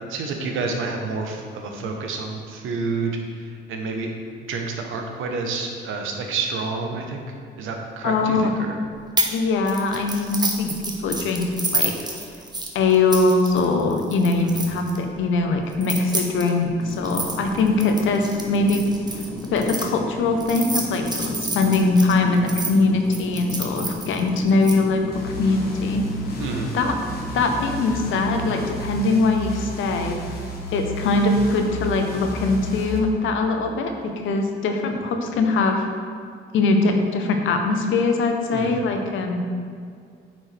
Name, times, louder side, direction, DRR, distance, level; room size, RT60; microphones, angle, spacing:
voice 1, 0.1-3.2 3.7-4.1 4.5-7.2 7.6-8.8 14.5-14.6 26.4-26.8 38.5-38.7, right 4 dB, 80° right, 2 dB, 0.9 m, -29 dB
voice 2, 8.0-8.5 9.3-10.8 11.0-12.2 12.7-18.9 19.1-26.1 26.7-26.9 27.3-30.2 30.7-35.9 36.5-39.4, left 3 dB, 75° left, 4 dB, 0.8 m, -22 dB
sound 1, 9.2-9.4 9.7-15.0 15.7-19.8 20.4-22.7 23.1-24.7, right 3 dB, 20° right, 0.9 m, -29 dB
sound 2, 16.8-28.9, left 2 dB, 5° left, 0.5 m, -34 dB
sound 3, 25.1-33.0, right 1 dB, 50° left, 1.2 m, -33 dB
9.0 x 4.4 x 3.3 m, 2.1 s
cardioid pair, 90°, 20 cm